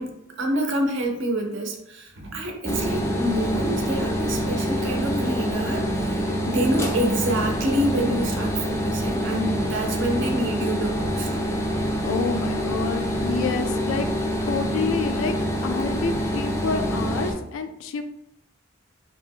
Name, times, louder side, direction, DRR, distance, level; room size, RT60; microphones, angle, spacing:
voice 1, 0.0-11.3, right 1 dB, 65° right, 2 dB, 0.6 m, -27 dB
sound 1, 2.6-17.3, equal, 15° left, 0.4 m, -26 dB
voice 2, 12.0-14.1 14.5-15.3 15.6-18.0, left 5 dB, 85° left, 8 dB, 0.4 m, -28 dB
2.8 x 2.1 x 3.5 m, 0.78 s
head